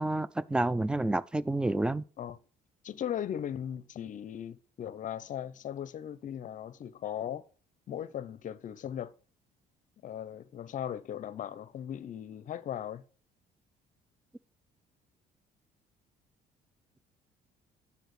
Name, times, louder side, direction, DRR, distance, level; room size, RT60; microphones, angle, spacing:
voice 1, 0.0-2.0, right 2 dB, 5° right, 0.3 m, -29 dB
voice 2, 2.8-7.4 7.9-9.1 10.0-13.0, left 10 dB, 50° left, 0.6 m, -38 dB
10.0 x 7.0 x 3.2 m
cardioid pair, 110°, 17 cm